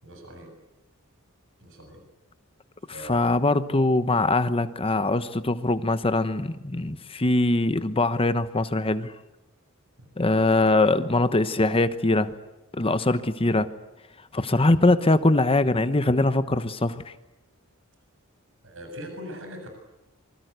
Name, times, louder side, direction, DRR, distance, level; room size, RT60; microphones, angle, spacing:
voice 1, 0.0-0.5 1.6-2.0 2.9-3.4 18.6-19.7, equal, 65° right, 5 dB, 7.3 m, -40 dB
voice 2, 3.1-9.1 10.2-12.3 12.7-13.7 14.3-17.1, left 2 dB, 25° left, 12 dB, 1.0 m, -22 dB
26.5 x 25.0 x 8.1 m, 1.0 s
head